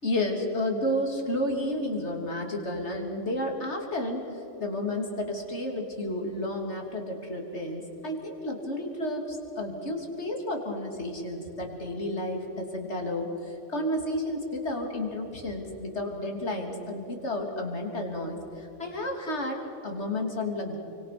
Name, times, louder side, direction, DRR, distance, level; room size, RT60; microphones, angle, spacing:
voice 1, 0.0-20.8, left 1 dB, 65° left, 2 dB, 3.6 m, -31 dB
29.5 x 24.5 x 6.1 m, 3.0 s
omnidirectional pair, 1.3 m